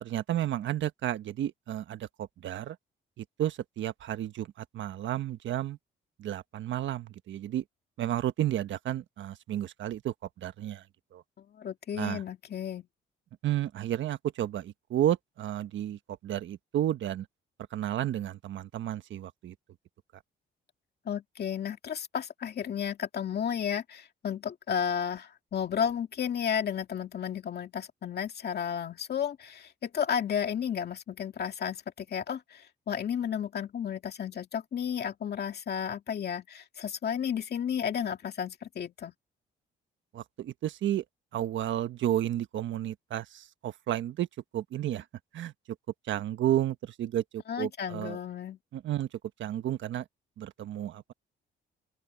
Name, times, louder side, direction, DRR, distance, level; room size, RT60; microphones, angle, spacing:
voice 1, 0.0-2.8 3.2-5.8 6.2-7.6 8.0-10.8 11.1-11.2 11.9-12.2 13.4-17.3 17.7-19.5 40.1-41.0 41.3-44.3 44.5-45.0 45.3-45.5 46.1-48.2 48.7-49.1 49.4-50.0 50.4-51.1, right 12 dB, 70° right, 1.3 m, -32 dB
voice 2, 11.4-12.8 21.1-39.1 47.5-48.6, left 8 dB, 55° left, 2.3 m, -33 dB
open air
cardioid pair, 90°, 20 cm